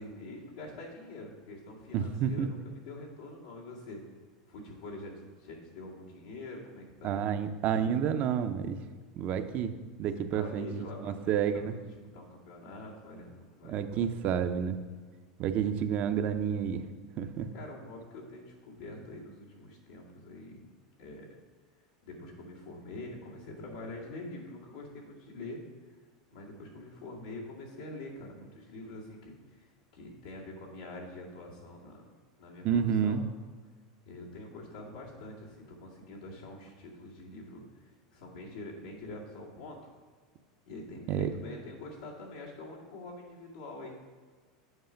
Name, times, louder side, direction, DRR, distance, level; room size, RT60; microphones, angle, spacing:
voice 1, 0.0-4.0 4.5-7.2 10.3-11.8 12.1-14.0 17.5-20.6 21.0-21.3 22.0-25.6 26.3-29.7 29.9-32.0 32.4-33.2 34.0-39.8 40.7-44.0, left 2 dB, 90° left, -4 dB, 2.3 m, -45 dB
voice 2, 1.9-2.5 7.0-8.8 9.2-11.8 13.6-14.8 15.4-16.9 17.2-17.5 32.6-33.2 41.1-41.3, right 8 dB, 45° right, 9 dB, 0.6 m, -30 dB
8.1 x 4.9 x 5.1 m, 1.5 s
supercardioid pair, 115°, 3 cm